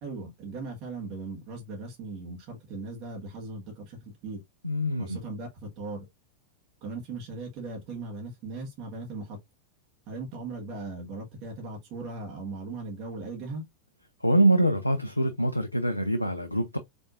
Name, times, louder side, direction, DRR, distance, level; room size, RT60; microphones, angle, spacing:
voice 1, 0.0-4.4 5.0-6.0 6.8-9.4 10.1-13.6, right 3 dB, 40° right, 1.5 m, -38 dB
voice 2, 4.6-5.2 14.2-16.8, right 1 dB, 85° left, 0.4 m, -24 dB
5.1 x 3.4 x 2.5 m
figure-of-eight pair, 90°, 0 cm